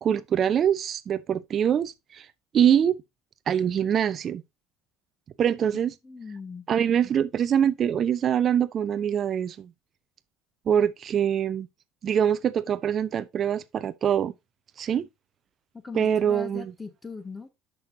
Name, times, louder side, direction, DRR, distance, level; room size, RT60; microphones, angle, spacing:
voice 1, 0.0-2.3 2.5-3.0 3.5-4.4 5.4-5.9 6.7-9.7 10.7-11.7 12.0-14.3 14.8-15.1 15.9-16.7, right 9 dB, 40° right, 0.6 m, -24 dB
voice 2, 6.0-6.7 15.8-17.5, left 4 dB, 20° left, 1.7 m, -39 dB
10.0 x 6.3 x 2.8 m
figure-of-eight pair, 60°, 0 cm